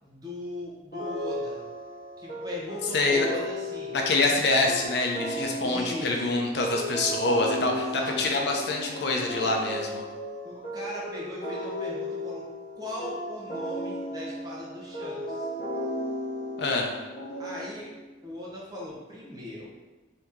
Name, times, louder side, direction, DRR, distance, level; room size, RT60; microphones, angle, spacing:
voice 1, 0.0-1.6 2.2-3.9 5.6-6.4 7.6-8.2 10.4-12.5 12.7-15.5 17.4-17.9 18.2-19.7, left 1 dB, 20° right, -5 dB, 0.8 m, -39 dB
sound 1, 0.9-18.1, equal, 40° left, 0.9 m, -35 dB
voice 2, 2.9-3.3 3.9-10.0 16.6-16.9, left 3 dB, 65° left, 1 dB, 0.5 m, -26 dB
2.9 x 2.8 x 3.5 m, 1.2 s
head